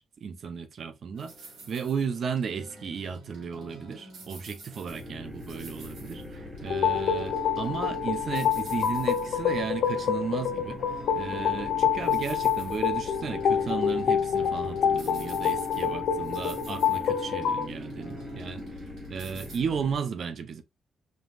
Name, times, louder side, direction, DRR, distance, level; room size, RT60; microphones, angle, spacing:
voice 1, 0.0-1.3 1.7-18.7 19.1-20.6, right 6 dB, 50° right, 0.6 m, -34 dB
sound 1, 1.1-19.6, right 2 dB, 75° right, 2.8 m, -49 dB
sound 2, 4.8-20.0, left 1 dB, 15° right, 1.1 m, -41 dB
sound 3, 6.7-17.7, left 7 dB, 75° left, 0.6 m, -27 dB
5.3 x 2.9 x 2.4 m
cardioid pair, 125°, 0 cm